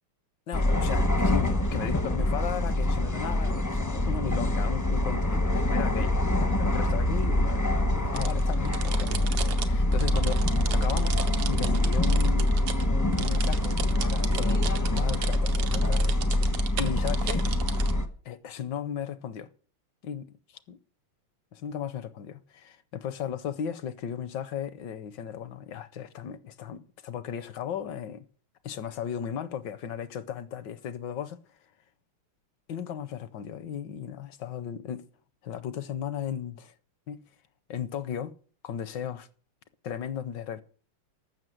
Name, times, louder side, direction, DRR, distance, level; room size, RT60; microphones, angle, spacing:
voice 1, 0.5-11.2 11.4-12.5 12.9-17.5 18.2-19.5 20.0-20.8 21.5-28.2 28.6-31.4 32.7-35.1 35.4-36.7 37.1-37.2 37.7-38.3 38.6-39.3 39.8-40.6, left 8 dB, 70° left, 1.2 m, -36 dB
sound 1, 0.5-18.1, left 1 dB, 20° left, 0.5 m, -25 dB
sound 2, 8.1-17.9, right 9 dB, 80° right, 1.9 m, -37 dB
14.0 x 6.3 x 7.7 m
omnidirectional pair, 2.4 m